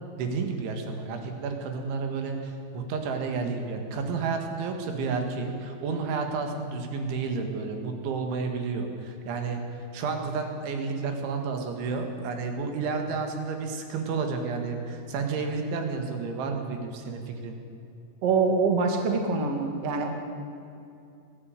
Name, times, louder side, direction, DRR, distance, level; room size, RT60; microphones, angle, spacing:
voice 1, 0.2-17.6, right 4 dB, 70° right, 4 dB, 4.1 m, -31 dB
voice 2, 18.2-20.1, right 4 dB, 50° right, 3 dB, 1.9 m, -24 dB
21.0 x 14.0 x 9.1 m, 2.6 s
omnidirectional pair, 5.9 m